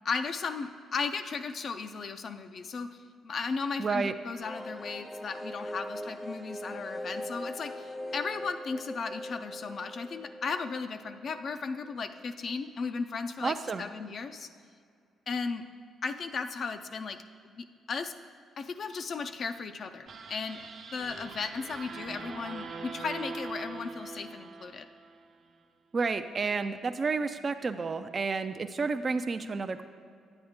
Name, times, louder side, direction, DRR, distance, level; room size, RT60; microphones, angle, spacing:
voice 1, 0.0-14.5 15.3-15.6 16.0-17.2 17.6-18.1 18.6-20.6 20.9-24.9, left 5 dB, 50° left, 8 dB, 0.4 m, -36 dB
voice 2, 3.8-4.1 13.4-13.8 25.9-29.8, right 4 dB, 35° right, 9 dB, 0.3 m, -30 dB
sound 1, 4.4-11.9 12.2-12.3 12.5-12.6, equal, 5° left, 0.6 m, -41 dB
sound 2, 20.1-25.3, right 3 dB, 60° right, 0.8 m, -42 dB
8.9 x 8.5 x 3.6 m, 2.2 s
cardioid pair, 90°, 0 cm